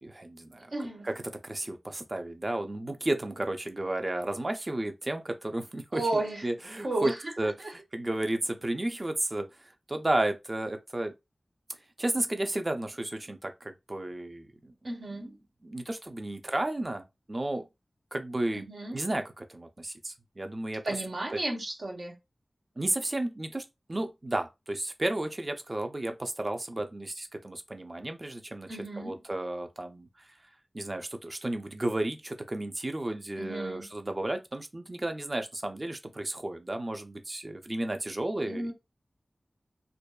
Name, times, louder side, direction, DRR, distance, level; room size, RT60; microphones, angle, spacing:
voice 1, 0.0-0.7 1.0-11.1 12.0-14.7 15.6-17.7 18.1-21.0 22.8-28.7 29.0-30.3 30.7-38.7, right 1 dB, 40° right, 0.5 m, -33 dB
voice 2, 0.7-1.1 5.9-6.4 6.8-7.2 14.8-15.4 18.5-19.0 20.8-22.1 28.7-29.2 33.4-33.9 38.5-38.7, right 2 dB, 80° right, 0.8 m, -33 dB
2.5 x 2.2 x 2.2 m
cardioid pair, 40°, 0 cm